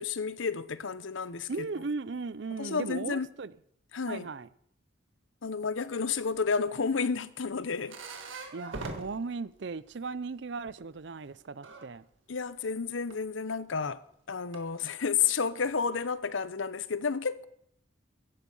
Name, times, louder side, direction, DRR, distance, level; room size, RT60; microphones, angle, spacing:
voice 1, 0.0-1.7 2.5-3.3 3.9-4.3 5.4-8.0 12.3-14.0 14.3-17.5, left 5 dB, 85° left, 0.8 m, -31 dB
voice 2, 1.5-3.5 4.1-4.5 8.5-12.0, right 4 dB, 65° right, 0.5 m, -37 dB
sound 1, 6.5-10.3 10.6-11.9 13.1-13.2 14.3-14.6 15.2-16.1, right 3 dB, 90° right, 1.9 m, -44 dB
15.5 x 11.0 x 5.5 m
head